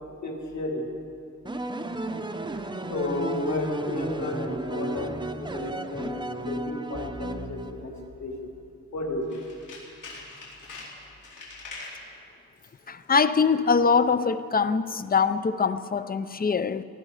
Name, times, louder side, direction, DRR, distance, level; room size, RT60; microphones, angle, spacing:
voice 1, 0.2-0.9 2.9-5.1 5.4-7.9 8.2-8.3 8.9-9.4, left 2 dB, 60° left, 0 dB, 3.1 m, -32 dB
sound 1, 1.4-8.1, right 2 dB, 15° right, 0.7 m, -34 dB
Tools, 9.2-12.0 12.5-12.9 13.1-13.2, left 3 dB, 80° left, 4.3 m, -43 dB
voice 2, 12.9-16.8, left 5 dB, 30° left, 13 dB, 0.6 m, -23 dB
18.5 x 13.5 x 4.9 m, 2.4 s
cardioid pair, 100°, 31 cm